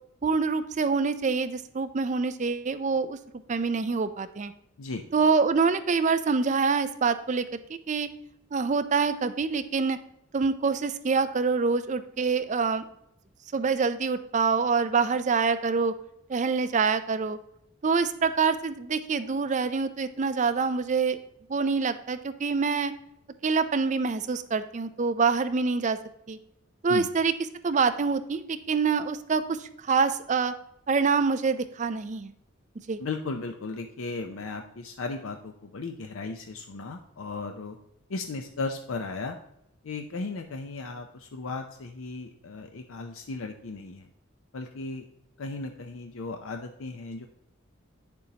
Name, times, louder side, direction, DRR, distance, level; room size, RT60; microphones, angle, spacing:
voice 1, 0.2-3.2 3.5-4.5 5.1-7.5 7.9-8.1 8.5-10.0 10.3-12.9 13.5-15.9 16.3-17.4 17.8-21.2 21.5-22.9 23.4-26.0 26.3-26.4 26.8-27.3 27.6-30.5 30.9-32.3 32.9-33.0, right 5 dB, 35° right, 11 dB, 0.4 m, -25 dB
voice 2, 33.0-37.8 38.1-39.4 39.8-44.1 44.5-45.0 45.4-47.3, left 3 dB, 70° left, 5 dB, 0.6 m, -36 dB
9.2 x 6.9 x 2.8 m, 0.78 s
head